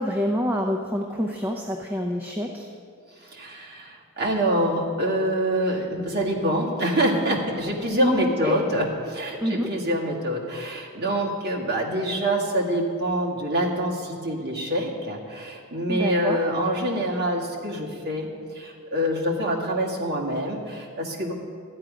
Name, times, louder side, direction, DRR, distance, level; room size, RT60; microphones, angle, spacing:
voice 1, 0.0-2.7 8.0-8.6 9.4-9.7 15.9-16.4, equal, 10° right, 1 dB, 0.6 m, -26 dB
voice 2, 3.2-21.3, right 1 dB, 50° right, -3 dB, 2.0 m, -26 dB
13.0 x 9.6 x 5.1 m, 2.2 s
head